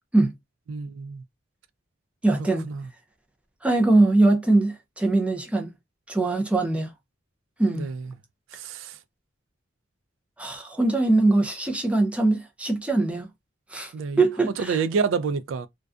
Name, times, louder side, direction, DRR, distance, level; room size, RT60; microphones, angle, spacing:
voice 1, 0.7-1.2 2.6-2.9 7.7-8.1 8.5-9.0 13.9-14.2 14.6-15.7, right 5 dB, 75° right, 0.3 m, -28 dB
voice 2, 2.2-2.7 3.6-5.7 6.1-6.9 7.6-7.9 10.4-13.3 13.7-14.8, right 2 dB, 5° right, 0.4 m, -22 dB
2.5 x 2.2 x 2.3 m
head